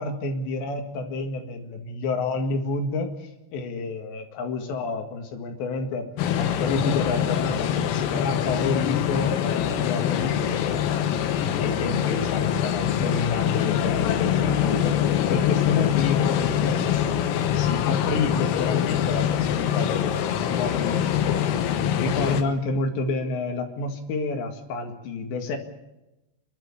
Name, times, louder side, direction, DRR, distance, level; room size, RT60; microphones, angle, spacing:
voice 1, 0.0-6.1 6.3-11.2 11.6-17.2 17.5-25.6, left 3 dB, 65° left, 5 dB, 3.8 m, -29 dB
sound 1, 6.2-22.4, left 9 dB, 85° left, 4.0 m, -24 dB
28.5 x 12.0 x 8.5 m, 0.97 s
omnidirectional pair, 6.0 m